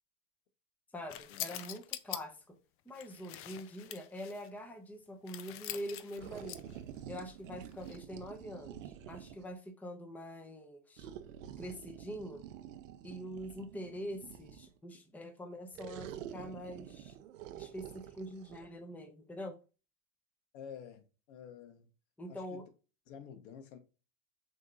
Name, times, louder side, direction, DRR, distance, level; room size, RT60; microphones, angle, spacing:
voice 1, 0.9-2.6 2.8-6.6 7.1-11.1 11.6-12.4 13.0-17.2 17.5-19.6 22.2-22.6, equal, 5° left, 0.7 m, -44 dB
sound 1, 1.1-2.2 2.9-4.5 5.3-6.8 7.7-8.0, left 12 dB, 35° left, 0.4 m, -44 dB
sound 2, 6.2-9.5 11.0-14.8 15.7-18.7, right 10 dB, 85° right, 0.6 m, -48 dB
voice 2, 20.5-21.9 22.3-22.6 23.1-23.8, left 8 dB, 65° left, 1.1 m, -50 dB
6.2 x 2.9 x 2.5 m
hypercardioid pair, 100°, 38 cm